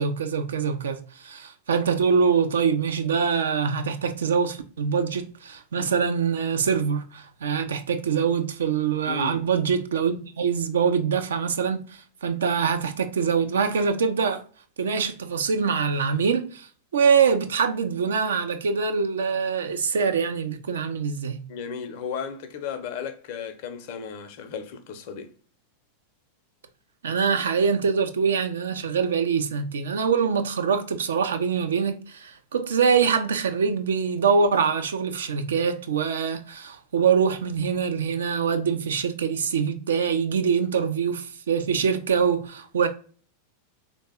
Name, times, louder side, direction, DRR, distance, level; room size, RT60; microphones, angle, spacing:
voice 1, 0.0-14.4 14.8-21.4 27.0-42.9, right 6 dB, 65° right, 0.4 m, -24 dB
voice 2, 9.1-9.4 21.5-25.3, left 6 dB, 50° left, 0.5 m, -34 dB
3.4 x 2.1 x 3.3 m
figure-of-eight pair, 90°, 0 cm